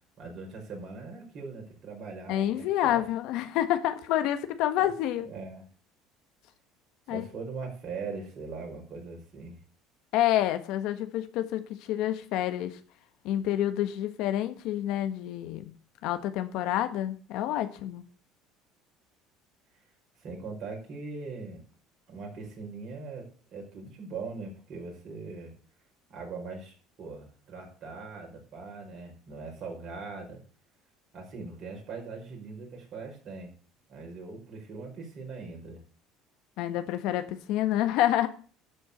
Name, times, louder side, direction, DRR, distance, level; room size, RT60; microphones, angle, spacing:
voice 1, 0.2-3.0 4.8-4.9 5.2-5.6 7.1-9.6 20.2-21.6 22.1-25.5 26.1-30.4 31.1-33.5 33.9-35.8, right 4 dB, 55° right, 1 dB, 5.2 m, -41 dB
voice 2, 2.3-5.3 7.1-7.3 10.1-12.8 13.2-15.7 16.0-18.0 36.6-38.3, left 12 dB, 70° left, 9 dB, 1.3 m, -28 dB
11.5 x 4.7 x 8.1 m, 0.42 s
supercardioid pair, 90°, 0 cm